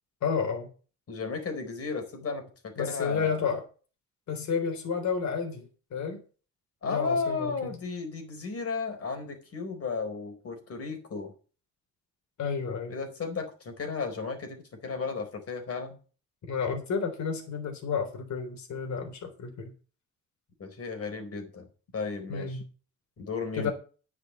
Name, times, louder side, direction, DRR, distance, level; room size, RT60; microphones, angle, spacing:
voice 1, 0.2-0.7 2.8-3.6 4.3-6.2 6.8-7.5 12.4-13.0 16.5-19.7 22.3-22.7 23.6-23.7, left 6 dB, 65° left, 5 dB, 3.6 m, -31 dB
voice 2, 1.1-3.5 6.8-11.3 12.9-16.0 20.6-21.7 21.9-22.6 23.2-23.7, left 4 dB, 50° left, 5 dB, 4.4 m, -34 dB
10.0 x 6.2 x 8.1 m, 0.38 s
cardioid pair, 90°, 30 cm